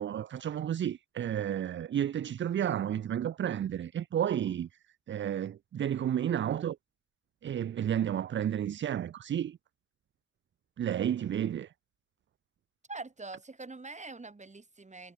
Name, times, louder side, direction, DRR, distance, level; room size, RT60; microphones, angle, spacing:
voice 1, 0.0-4.7 5.1-6.8 7.4-9.6 10.8-11.7, right 10 dB, 40° right, 0.4 m, -31 dB
voice 2, 12.9-15.1, right 3 dB, 20° right, 2.9 m, -44 dB
cardioid pair, 75°, 31 cm